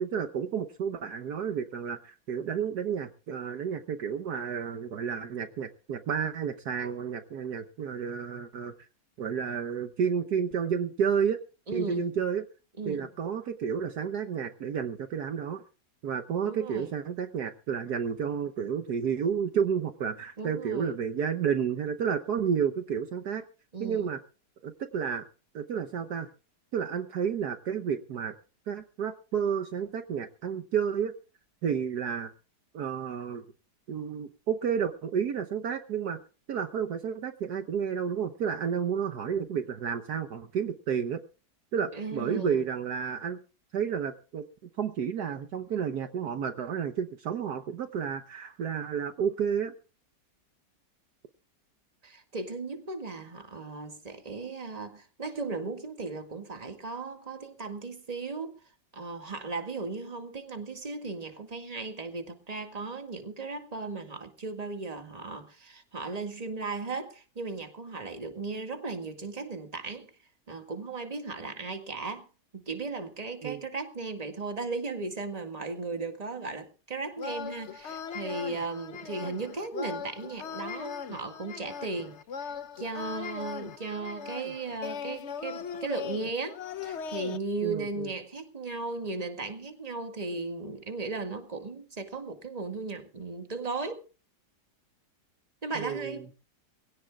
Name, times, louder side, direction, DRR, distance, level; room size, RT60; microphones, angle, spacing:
voice 1, 0.0-8.7 9.2-11.4 11.7-12.4 12.9-15.6 16.0-23.4 23.8-24.2 24.6-25.3 25.5-26.3 26.7-28.3 28.7-31.1 31.6-32.3 32.7-33.4 33.9-36.2 36.5-41.2 41.7-43.4 43.7-44.4 44.8-49.7 73.4-73.6 87.6-88.1 95.7-96.1, right 7 dB, 65° right, 1.5 m, -31 dB
voice 2, 11.7-12.1 12.8-13.1 16.4-16.9 20.4-21.0 23.7-24.1 41.9-42.7 52.0-58.6 58.9-70.1 70.5-72.3 72.5-94.0 95.6-96.3, right 3 dB, 20° right, 1.9 m, -36 dB
sound 1, 77.2-87.4, left 7 dB, 50° left, 0.9 m, -39 dB
23.0 x 17.0 x 2.4 m
omnidirectional pair, 1.9 m